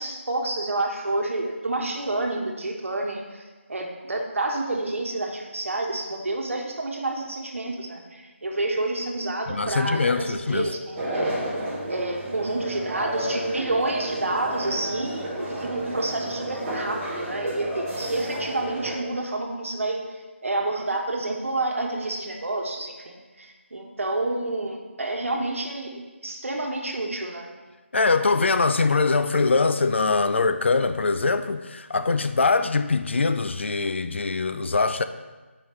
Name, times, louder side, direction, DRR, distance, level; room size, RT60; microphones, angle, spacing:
voice 1, 0.0-3.4 3.7-11.3 11.9-20.0 20.4-25.9 26.2-27.5, right 2 dB, 75° right, 1.1 m, -29 dB
voice 2, 9.5-10.7 27.9-35.0, left 4 dB, 60° left, 0.4 m, -23 dB
sound 1, 10.9-18.9, right 1 dB, 10° right, 0.9 m, -31 dB
7.2 x 4.9 x 3.1 m
figure-of-eight pair, 170°, 7 cm